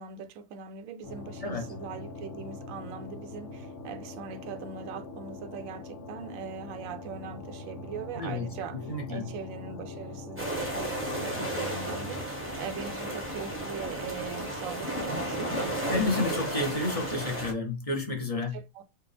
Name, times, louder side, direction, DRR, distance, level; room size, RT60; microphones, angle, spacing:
voice 1, 0.0-16.0 18.5-18.8, right 6 dB, 75° right, 1.0 m, -41 dB
sound 1, 1.0-12.2, left 3 dB, 65° left, 1.2 m, -42 dB
voice 2, 1.4-1.7 8.2-8.5 8.9-9.3 15.9-18.6, left 2 dB, 35° left, 0.7 m, -30 dB
sound 2, 10.4-17.5, right 1 dB, 15° right, 0.6 m, -33 dB
4.5 x 2.2 x 3.3 m
omnidirectional pair, 1.5 m